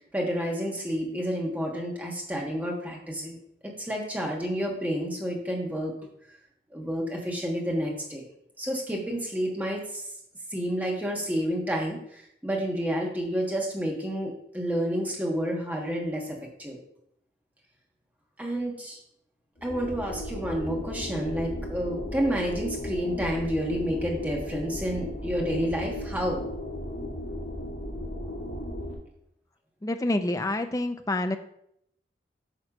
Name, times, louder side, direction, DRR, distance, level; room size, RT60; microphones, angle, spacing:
voice 1, 0.0-3.4 3.6-5.9 6.7-8.2 8.6-10.0 10.5-16.8 18.4-19.0 19.6-26.4, equal, 10° right, -1 dB, 1.3 m, -30 dB
sound 1, 19.6-28.9, left 1 dB, 75° left, 2.0 m, -35 dB
voice 2, 29.8-31.4, left 2 dB, 20° left, 8 dB, 0.5 m, -27 dB
8.8 x 3.2 x 5.9 m, 0.73 s
head